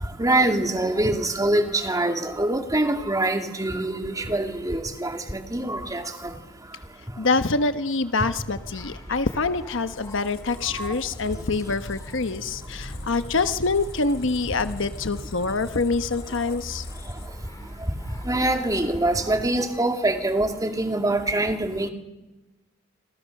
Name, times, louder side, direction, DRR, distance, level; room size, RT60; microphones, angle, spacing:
voice 1, 0.2-6.0 10.8-10.9 18.3-21.9, right 1 dB, 20° right, 5 dB, 2.5 m, -24 dB
voice 2, 7.2-16.8, left 3 dB, 65° left, 10 dB, 1.1 m, -25 dB
sound 1, 8.2-19.3, equal, 15° left, 2.4 m, -41 dB
Squeak, 9.7-17.6, left 1 dB, 50° left, 4.1 m, -42 dB
29.5 x 26.0 x 6.6 m, 1.1 s
head